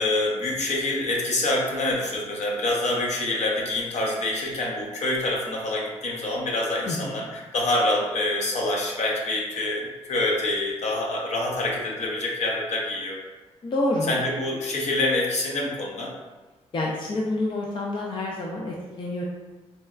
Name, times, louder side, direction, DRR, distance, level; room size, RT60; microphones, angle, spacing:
voice 1, 0.0-13.2 14.1-16.1, left 2 dB, 65° left, -2 dB, 0.8 m, -26 dB
voice 2, 6.9-7.3 13.6-14.2 16.7-19.2, left 2 dB, 40° left, -2 dB, 0.4 m, -28 dB
4.0 x 2.2 x 2.3 m, 1.3 s
cardioid pair, 80°, 12 cm